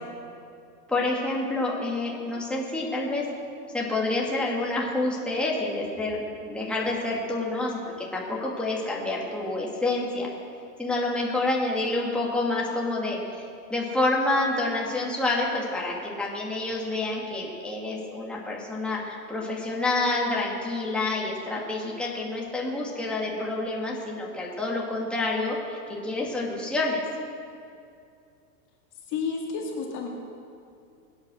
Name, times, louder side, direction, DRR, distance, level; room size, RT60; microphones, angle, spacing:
voice 1, 0.9-3.2 3.7-10.3 10.8-13.2 13.7-27.0, left 2 dB, ahead, -4 dB, 2.4 m, -28 dB
voice 2, 29.1-30.1, left 5 dB, 35° left, 0 dB, 2.2 m, -30 dB
22.0 x 9.0 x 6.4 m, 2.5 s
hypercardioid pair, 130°, 48 cm